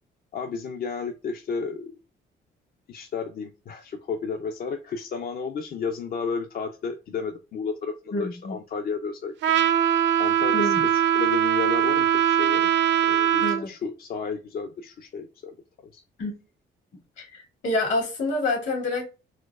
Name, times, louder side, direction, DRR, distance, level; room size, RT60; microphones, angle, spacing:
voice 1, 0.3-1.9 2.9-9.3 10.2-12.7 13.0-16.0, left 5 dB, 50° left, 0.4 m, -32 dB
voice 2, 8.1-8.6 10.5-10.8 13.4-13.7 16.2-16.4 17.2-19.1, left 2 dB, 70° left, 1.9 m, -27 dB
Trumpet, 9.4-13.6, right 10 dB, 65° right, 0.5 m, -21 dB
4.2 x 2.3 x 2.3 m
cardioid pair, 90°, 20 cm